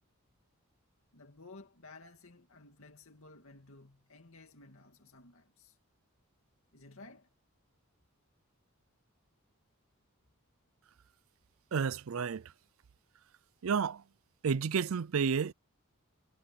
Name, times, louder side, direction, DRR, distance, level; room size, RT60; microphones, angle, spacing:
voice 1, 1.1-5.8 6.7-7.3, left 3 dB, 65° left, 2.5 m, -55 dB
voice 2, 11.7-12.5 13.6-14.0 14.4-15.5, right 6 dB, 65° right, 0.4 m, -31 dB
head